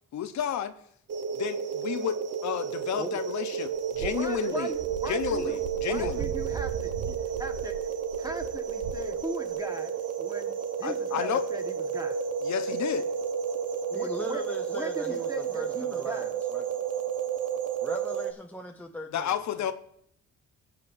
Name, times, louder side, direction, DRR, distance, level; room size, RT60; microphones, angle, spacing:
voice 1, 0.1-0.7 1.4-4.7 5.1-6.3 10.8-11.4 12.4-13.1 19.1-19.7, left 9 dB, 65° left, 10 dB, 0.8 m, -31 dB
sound 1, 1.1-18.3, right 7 dB, 55° right, 1.0 m, -32 dB
sound 2, 3.7-9.5, right 7 dB, 90° right, 0.9 m, -39 dB
voice 2, 4.0-5.6 5.8-7.8 8.2-9.9 10.2-12.2 13.9-14.4 14.7-16.3, equal, 10° right, 5 dB, 1.4 m, -39 dB
voice 3, 13.9-16.8 17.8-19.7, left 1 dB, 5° left, 3 dB, 0.6 m, -40 dB
18.0 x 7.6 x 2.6 m, 0.67 s
cardioid pair, 90°, 30 cm